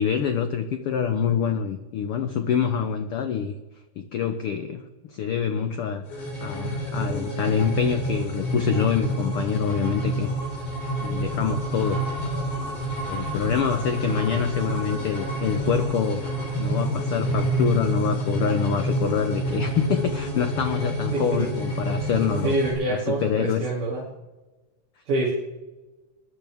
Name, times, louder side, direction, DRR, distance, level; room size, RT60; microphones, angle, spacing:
voice 1, 0.0-3.5 4.0-10.3 11.0-12.4 13.1-16.2 16.6-22.5 22.9-23.7, left 7 dB, 90° left, 8 dB, 1.2 m, -26 dB
sound 1, 6.1-22.7, right 1 dB, 70° left, 7.3 m, -28 dB
voice 2, 21.1-21.5 22.4-24.0 25.1-25.3, right 2 dB, 80° right, -6 dB, 4.3 m, -26 dB
21.5 x 12.5 x 3.5 m, 1.1 s
omnidirectional pair, 3.6 m